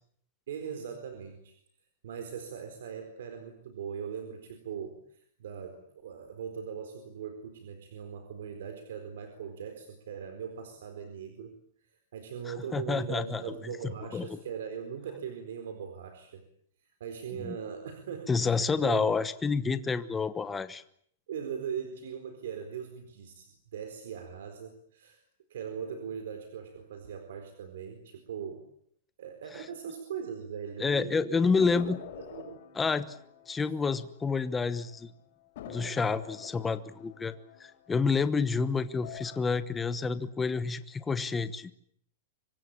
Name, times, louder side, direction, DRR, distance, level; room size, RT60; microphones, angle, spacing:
voice 1, 0.5-1.6 2.0-11.6 11.8-16.4 16.8-19.1 21.3-25.2 25.5-28.7 29.2-31.9 32.3-32.6, right 7 dB, 75° right, 7 dB, 4.2 m, -40 dB
voice 2, 12.7-13.5 14.1-14.3 17.4-17.5 18.3-20.8 30.8-32.0 32.7-33.1 33.5-35.1 35.7-37.3 37.6-41.7, left 4 dB, 10° left, 12 dB, 1.1 m, -29 dB
sound 1, 31.6-34.7 34.9-35.0 35.6-38.5 38.9-39.5, left 7 dB, 45° left, 6.2 m, -46 dB
26.0 x 22.5 x 8.7 m, 0.66 s
supercardioid pair, 180°, 0 cm